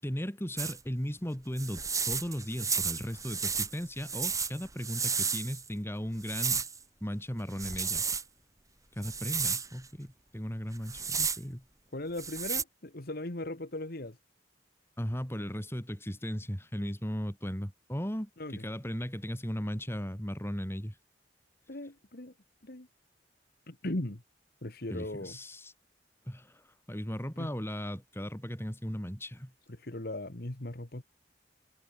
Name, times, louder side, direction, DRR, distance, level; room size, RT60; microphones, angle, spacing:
voice 1, 0.0-6.6 7.0-8.0 9.0-11.6 15.0-21.0 24.9-25.7 26.3-29.5, equal, 15° left, 4.6 m, -37 dB
sound 1, 0.6-0.8 1.6-5.7 6.2-6.8 7.5-8.2 9.0-9.7 10.8-11.4 12.2-12.6, right 6 dB, 20° right, 3.5 m, -32 dB
voice 2, 11.9-14.2 18.4-18.7 21.7-22.3 22.6-22.9 23.7-24.2 24.6-25.4 27.4-27.5 29.7-31.0, left 1 dB, 55° left, 1.9 m, -38 dB
head